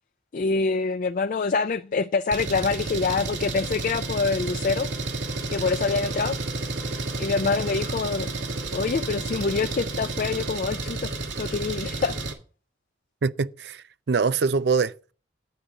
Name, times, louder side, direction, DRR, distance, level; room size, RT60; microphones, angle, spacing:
voice 1, 0.3-4.9 5.5-6.4 6.6-6.7 7.2-8.3 8.7-11.1 11.4-12.2, left 4 dB, 45° left, 0.4 m, -26 dB
Engine, 2.3-12.3, right 3 dB, 85° right, 2.0 m, -31 dB
voice 2, 13.2-15.1, right 4 dB, 65° right, 0.5 m, -24 dB
10.5 x 5.0 x 6.8 m
head